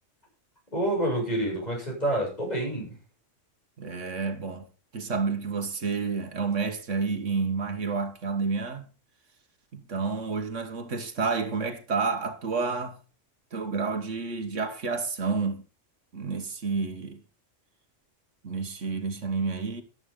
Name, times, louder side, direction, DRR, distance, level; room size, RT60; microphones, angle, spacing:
voice 1, 0.7-3.0, right 1 dB, 35° left, 7.6 m, -28 dB
voice 2, 3.8-4.7 4.9-8.9 9.7-13.0 13.5-15.6 16.1-17.2 18.4-19.8, right 4 dB, 75° right, 1.8 m, -30 dB
14.0 x 11.0 x 3.8 m
omnidirectional pair, 1.3 m